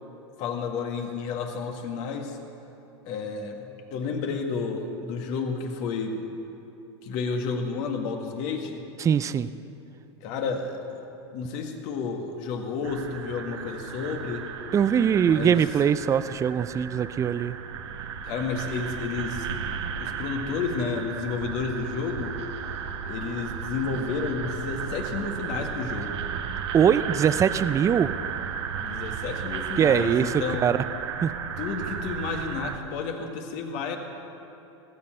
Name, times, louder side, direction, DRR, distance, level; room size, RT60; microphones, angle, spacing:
voice 1, 0.4-2.4 3.1-6.3 7.0-8.8 10.2-11.0 11.3-14.5 15.2-15.6 18.2-19.5 20.0-22.4 23.1-26.1 28.8-30.7 31.6-34.0, left 5 dB, 55° left, 3 dB, 1.8 m, -31 dB
voice 2, 9.0-9.5 14.7-17.6 26.7-28.1 29.8-30.2 30.6-30.8 31.2-31.3, right 8 dB, 20° right, 14 dB, 0.4 m, -22 dB
sound 1, 12.8-32.8, right 7 dB, 75° right, 1.1 m, -34 dB
18.5 x 7.4 x 7.8 m, 2.9 s
hypercardioid pair, 110°, 15 cm